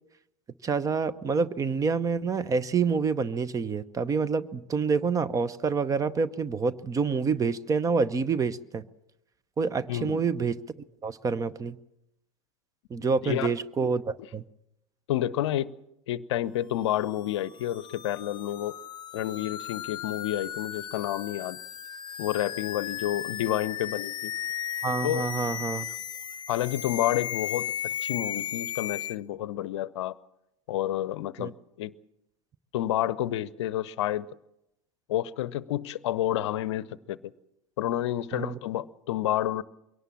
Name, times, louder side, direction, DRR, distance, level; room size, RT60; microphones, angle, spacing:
voice 1, 0.6-8.8 9.6-10.6 11.0-11.8 12.9-14.4 24.8-25.9 31.4-31.5 38.3-38.6, right 5 dB, 20° right, 0.7 m, -27 dB
voice 2, 9.9-10.2 13.2-13.5 15.1-15.7 16.1-18.8 19.1-21.6 22.2-24.3 25.0-25.3 26.5-27.7 28.0-30.1 30.7-31.9 32.7-34.3 35.1-37.2 37.8-39.6, left 13 dB, 55° left, 0.7 m, -29 dB
sound 1, 16.9-29.2, left 10 dB, 25° left, 0.9 m, -36 dB
22.5 x 18.0 x 7.3 m
figure-of-eight pair, 80°, 17 cm